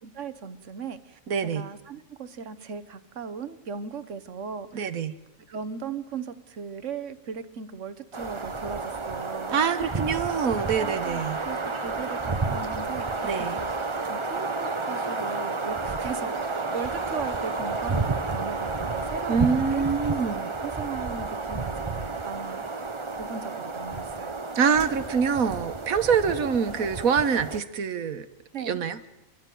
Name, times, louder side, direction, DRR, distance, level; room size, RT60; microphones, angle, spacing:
voice 1, 0.0-1.2 1.5-4.9 5.5-10.0 10.8-13.1 13.4-13.7 14.1-20.1 20.6-22.7 23.2-24.4 28.5-28.8, right 6 dB, 60° right, 12 dB, 1.4 m, -38 dB
voice 2, 1.3-1.7 4.7-5.1 9.5-11.4 13.2-13.6 19.3-20.5 24.5-28.3 28.6-29.0, right 6 dB, 85° right, 11 dB, 1.5 m, -25 dB
sound 1, 8.1-27.6, right 3 dB, 25° right, 0.9 m, -31 dB
28.5 x 12.0 x 9.2 m, 0.99 s
omnidirectional pair, 1.4 m